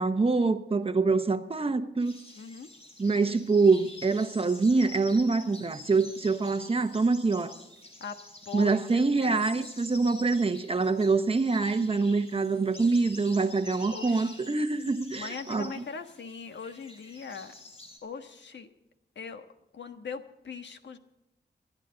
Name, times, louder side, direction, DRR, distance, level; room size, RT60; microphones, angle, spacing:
voice 1, 0.0-2.2 3.0-7.5 8.5-15.7, right 3 dB, 30° right, 1.0 m, -25 dB
sound 1, 2.0-18.0, left 2 dB, 35° left, 3.6 m, -48 dB
voice 2, 2.3-2.7 8.0-9.5 13.9-14.5 15.1-17.6 18.0-18.7 19.1-19.5 19.7-21.0, left 5 dB, 80° left, 1.4 m, -41 dB
27.5 x 11.0 x 3.9 m
wide cardioid pair, 160°, 18 cm